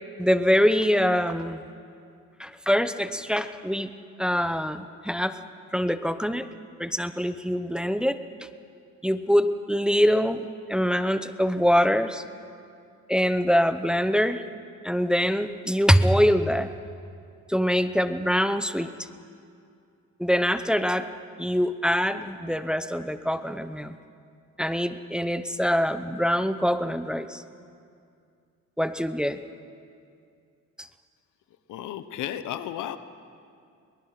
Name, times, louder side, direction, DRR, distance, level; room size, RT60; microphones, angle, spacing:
voice 1, 0.2-1.7 2.4-3.9 4.2-5.4 5.7-6.5 6.8-8.2 9.0-12.2 13.1-14.4 14.8-16.7 17.5-18.9 20.2-21.1 21.4-23.9 24.6-27.4 28.8-29.4 30.8-30.9, equal, 5° right, 11 dB, 0.8 m, -24 dB
voice 2, 31.7-33.0, left 11 dB, 85° left, 12 dB, 1.0 m, -33 dB
22.5 x 20.5 x 5.9 m, 2.4 s
cardioid pair, 90°, 30 cm